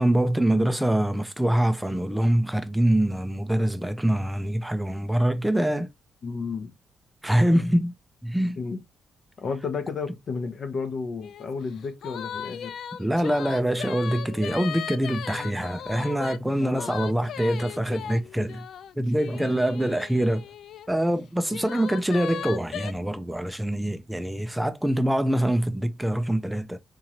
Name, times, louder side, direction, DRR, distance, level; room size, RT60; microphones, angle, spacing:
voice 1, 0.0-5.9 7.2-7.9 8.2-8.6 13.0-18.6 19.0-20.4 20.9-26.8, right 1 dB, 5° right, 0.4 m, -24 dB
voice 2, 6.2-6.7 8.6-8.8 9.4-12.7 15.3-15.6 16.6-16.9 17.2-17.3 19.3-19.5, left 5 dB, 50° left, 0.7 m, -33 dB
sound 1, 11.2-11.5 11.8-20.9 21.5-22.9, left 8 dB, 70° left, 0.3 m, -37 dB
3.7 x 2.9 x 2.8 m
cardioid pair, 130°, 0 cm